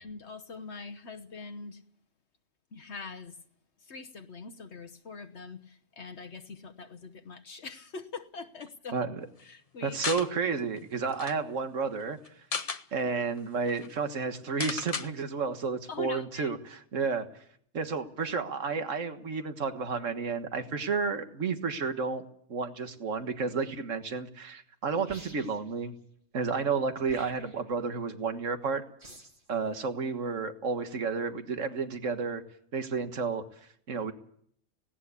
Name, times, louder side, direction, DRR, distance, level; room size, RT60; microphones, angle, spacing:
voice 1, 0.0-1.8 2.7-3.4 3.8-9.0 9.4-10.3 15.9-16.5, left 4 dB, 60° left, 8 dB, 1.3 m, -43 dB
voice 2, 9.8-12.2 12.9-16.6 16.9-17.3 17.7-22.2 22.5-25.9 26.3-28.8 29.5-32.4 32.7-33.4 33.9-34.1, right 5 dB, 75° right, 8 dB, 1.8 m, -31 dB
sound 1, 10.0-10.3 10.8-10.9 11.1-11.3 12.2-12.8 13.4-13.5 13.7-13.9 14.6-15.1, left 4 dB, 30° left, 0.9 m, -33 dB
sound 2, 25.0-25.7 27.0-27.7 29.0-29.5, right 1 dB, 45° right, 3.3 m, -50 dB
18.0 x 17.5 x 8.3 m, 0.64 s
omnidirectional pair, 1.3 m